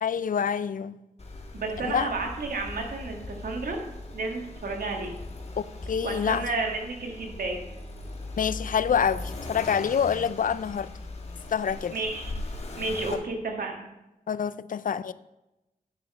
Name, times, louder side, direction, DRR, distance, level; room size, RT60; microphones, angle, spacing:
voice 1, 0.0-1.0 1.8-2.1 5.6-6.5 8.4-10.9 11.5-12.0 13.1-13.2 14.3-15.1, left 7 dB, 65° left, 0.4 m, -27 dB
Accelerating revving vroom, 1.2-13.1, left 2 dB, 45° left, 1.9 m, -39 dB
voice 2, 1.5-3.8 4.1-5.1 6.0-7.6 11.9-12.3 12.8-13.9, right 3 dB, 85° right, 2.1 m, -31 dB
10.0 x 6.4 x 6.5 m
wide cardioid pair, 75°, 15 cm